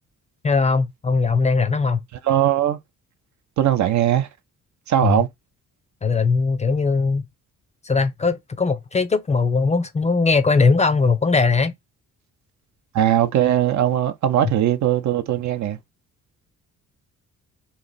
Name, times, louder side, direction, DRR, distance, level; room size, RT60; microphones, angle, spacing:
voice 1, 0.4-2.0 5.0-5.2 6.0-7.2 7.8-11.7, left 4 dB, 20° left, 0.4 m, -19 dB
voice 2, 2.2-2.8 3.6-4.3 4.9-5.3 12.9-15.8, right 11 dB, 60° right, 0.7 m, -19 dB
3.1 x 3.0 x 3.9 m
cardioid pair, 125°, 32 cm